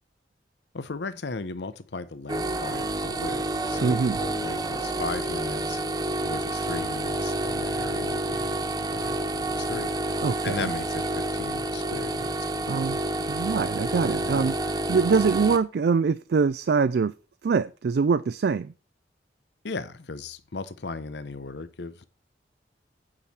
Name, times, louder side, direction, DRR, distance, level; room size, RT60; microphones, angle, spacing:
voice 1, 0.7-5.8 6.2-9.9 10.4-12.9 14.2-14.5 19.6-22.1, left 3 dB, 75° left, 0.8 m, -37 dB
sound 1, 2.3-15.6, right 2 dB, 20° right, 0.7 m, -29 dB
voice 2, 3.8-4.2 10.2-10.7 12.7-13.0 13.3-14.5 14.9-17.1 17.4-18.7, right 5 dB, 65° right, 0.4 m, -24 dB
8.8 x 6.4 x 4.3 m
head